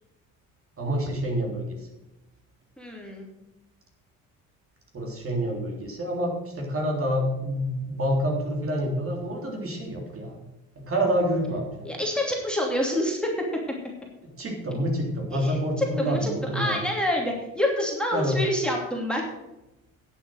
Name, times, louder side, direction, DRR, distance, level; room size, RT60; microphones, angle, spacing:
voice 1, 0.8-1.9 4.9-10.4 10.7-11.9 14.2-16.8 18.1-18.4, equal, 40° right, 0 dB, 3.4 m, -27 dB
voice 2, 2.8-3.3 11.8-13.2 15.3-19.2, left 1 dB, 5° left, -1 dB, 2.7 m, -27 dB
11.0 x 7.4 x 6.4 m, 0.96 s
cardioid pair, 95°, 35 cm